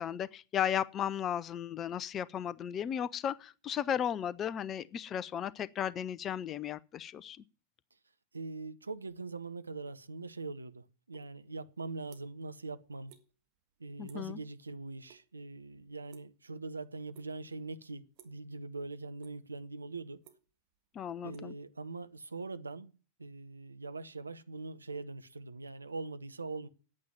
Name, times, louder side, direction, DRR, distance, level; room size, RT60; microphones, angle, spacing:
voice 1, 0.0-7.4 14.0-14.4 20.9-21.5, left 9 dB, 30° left, 0.6 m, -35 dB
voice 2, 8.3-13.1 13.8-20.2 21.2-22.9 23.2-26.7, right 3 dB, 80° right, 0.8 m, -42 dB
sound 1, 11.1-11.3 11.6-12.5 12.8-13.3 13.5-13.8 14.1-14.4 14.7-15.2 15.5-16.7 17.1-17.6 18.1-18.5 18.9-19.6 19.9-22.1, right 11 dB, 45° right, 1.6 m, -61 dB
9.5 x 8.7 x 9.5 m
figure-of-eight pair, 90°, 0 cm